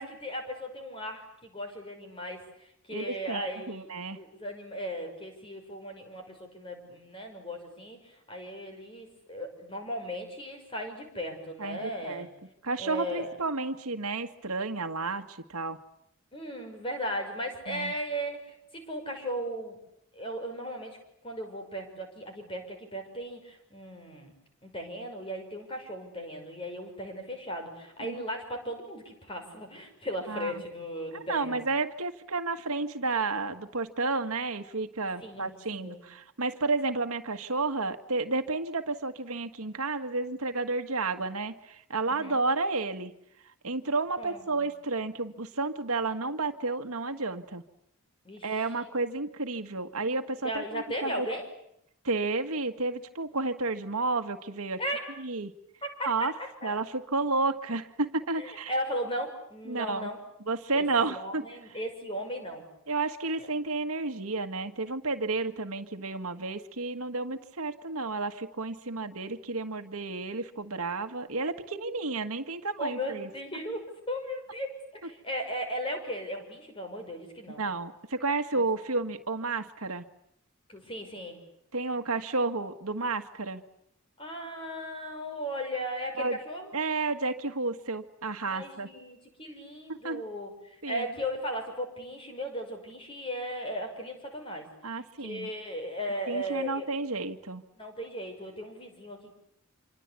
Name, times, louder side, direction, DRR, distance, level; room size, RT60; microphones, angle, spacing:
voice 1, 0.0-3.9 4.2-12.3 12.8-13.3 16.3-19.8 20.1-21.0 21.2-24.3 24.6-31.6 35.2-36.0 42.1-42.4 44.2-44.4 48.2-48.6 50.4-51.5 54.8-55.1 55.8-56.3 56.6-56.7 58.4-60.2 60.7-62.6 63.4-63.5 71.8-72.0 72.8-77.6 78.5-78.7 80.7-81.4 84.2-86.7 88.4-94.6 95.2-96.9 97.8-99.3, equal, 25° left, 4 dB, 5.8 m, -37 dB
voice 2, 2.9-4.2 11.6-12.3 12.6-15.8 17.7-17.9 28.0-28.2 30.3-30.6 31.1-43.1 43.6-47.6 48.4-51.3 52.0-54.8 55.2-55.5 56.0-56.3 56.6-58.7 59.7-60.1 60.5-61.8 62.9-73.3 77.5-80.0 81.7-83.6 86.2-86.4 86.7-88.9 89.9-90.2 90.8-91.1 94.8-95.5 96.3-97.6, right 3 dB, 85° right, 7 dB, 1.8 m, -31 dB
27.0 x 26.0 x 8.4 m, 0.74 s
head